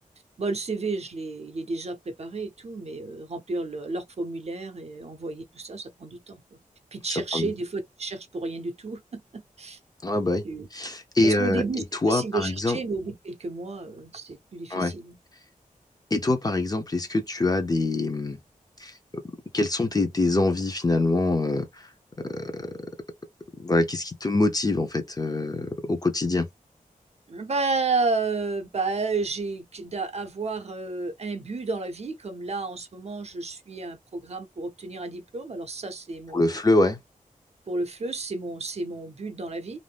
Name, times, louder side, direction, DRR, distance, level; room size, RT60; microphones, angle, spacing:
voice 1, 0.4-6.6 6.9-9.8 10.4-10.7 11.2-15.2 27.3-36.6 37.7-39.8, right 3 dB, 50° right, 0.6 m, -32 dB
voice 2, 10.0-10.4 10.7-11.6 12.0-12.8 14.7-14.9 16.1-18.4 18.8-18.9 19.5-21.7 22.2-22.7 23.6-26.5 36.3-37.0, left 2 dB, 25° left, 0.6 m, -24 dB
2.5 x 2.1 x 3.4 m
wide cardioid pair, 115°, 14 cm